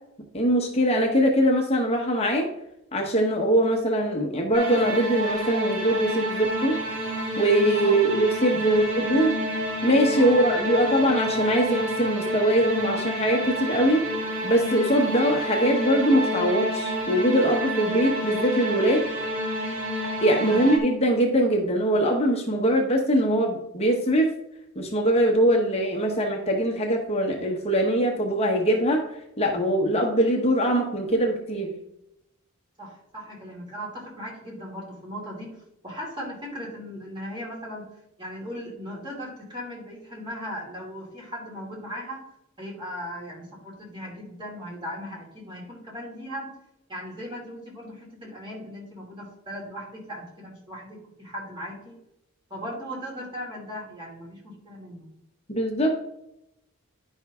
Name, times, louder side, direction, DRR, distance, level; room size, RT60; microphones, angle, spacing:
voice 1, 0.3-2.5 2.9-6.8 7.4-9.3 9.8-14.0 14.4-19.0 20.2-24.3 24.8-29.0 29.4-31.7 55.5-55.9, right 1 dB, 30° left, 1 dB, 1.1 m, -22 dB
sound 1, 4.5-20.8, equal, 80° right, 3.4 m, -29 dB
voice 2, 8.6-9.0 10.2-10.4 20.3-20.7 32.8-35.5 35.8-37.9 38.2-42.2 42.6-46.5 46.9-52.0 52.5-55.1, equal, 20° right, -3 dB, 2.8 m, -38 dB
10.5 x 5.5 x 3.6 m, 0.81 s
head